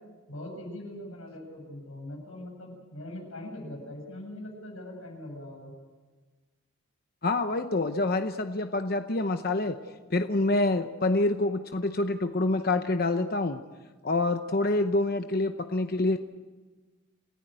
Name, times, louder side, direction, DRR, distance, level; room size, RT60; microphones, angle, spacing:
voice 1, 0.3-5.7, left 1 dB, 80° left, 1 dB, 7.5 m, -41 dB
voice 2, 7.2-9.8 10.1-13.6 14.0-16.2, left 2 dB, 45° left, 7 dB, 0.8 m, -26 dB
28.0 x 15.5 x 9.0 m, 1.3 s
head